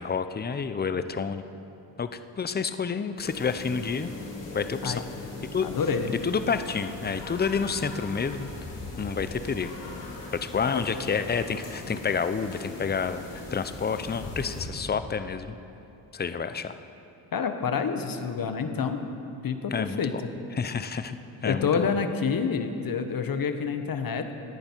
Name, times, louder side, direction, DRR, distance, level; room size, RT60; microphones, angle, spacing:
voice 1, 0.0-1.4 2.0-2.1 2.4-4.1 4.5-5.0 5.5-5.7 6.2-8.5 9.0-9.7 10.4-15.6 16.1-16.7 19.7-20.0 20.5-21.9, left 6 dB, 25° left, 11 dB, 0.6 m, -29 dB
sound 1, 3.2-14.6, left 2 dB, 80° left, 3.9 m, -40 dB
voice 2, 5.6-6.1 10.7-10.9 17.3-19.0 19.4-20.3 21.4-24.3, left 6 dB, 50° left, 7 dB, 1.2 m, -28 dB
17.5 x 10.5 x 4.6 m, 2.8 s
cardioid pair, 75°, 43 cm